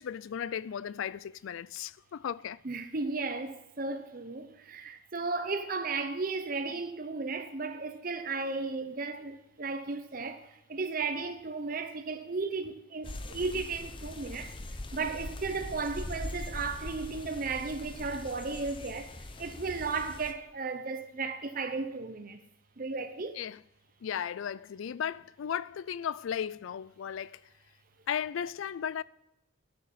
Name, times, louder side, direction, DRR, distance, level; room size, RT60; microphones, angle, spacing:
voice 1, 0.0-2.6 23.4-23.6 24.0-27.4 28.1-29.0, left 8 dB, 70° left, 0.3 m, -35 dB
voice 2, 2.6-14.5 14.9-19.1 19.4-22.4 22.8-23.4, right 4 dB, 45° right, 0.7 m, -35 dB
sound 1, 13.0-20.3, left 2 dB, 25° left, 0.7 m, -42 dB
11.0 x 6.5 x 8.3 m
head